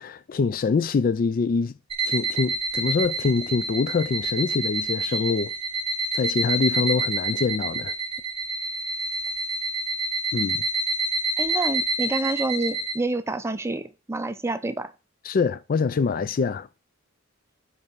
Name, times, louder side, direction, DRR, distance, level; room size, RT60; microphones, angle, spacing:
voice 1, 0.0-1.7 2.1-5.5 6.1-7.9 10.3-10.6 15.2-16.7, left 5 dB, 45° left, 0.4 m, -24 dB
sound 1, 1.9-12.9, right 2 dB, 30° right, 1.1 m, -28 dB
voice 2, 11.4-14.9, right 2 dB, 15° right, 0.5 m, -28 dB
5.6 x 4.7 x 5.4 m
head